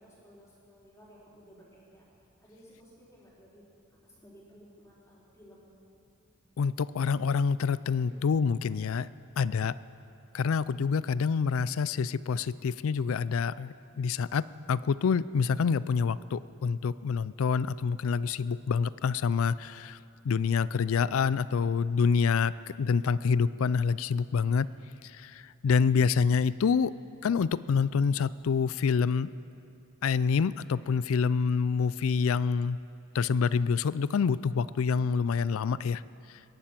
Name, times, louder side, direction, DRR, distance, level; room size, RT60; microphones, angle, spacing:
voice 1, 0.0-2.0 2.4-3.7 4.0-5.7 7.9-8.2, equal, 15° left, -7 dB, 4.2 m, -56 dB
voice 2, 6.6-9.1 9.4-9.8 10.3-20.0 20.2-24.7 25.0-27.0 27.2-29.3 30.0-32.8 33.1-36.0, left 5 dB, 70° left, 18 dB, 0.4 m, -27 dB
21.5 x 11.5 x 5.9 m, 2.7 s
head